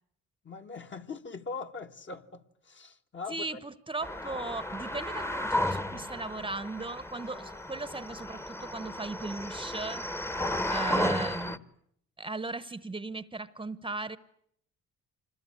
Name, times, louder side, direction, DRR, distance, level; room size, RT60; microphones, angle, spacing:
voice 1, 0.4-3.6 10.5-11.7, left 4 dB, 40° left, 1.7 m, -42 dB
voice 2, 3.3-10.0 10.7-11.6 12.2-14.2, right 2 dB, 15° right, 1.0 m, -37 dB
sound 1, 4.0-11.6, left 1 dB, 10° left, 1.2 m, -33 dB
26.0 x 20.5 x 9.9 m
cardioid pair, 90°, 30 cm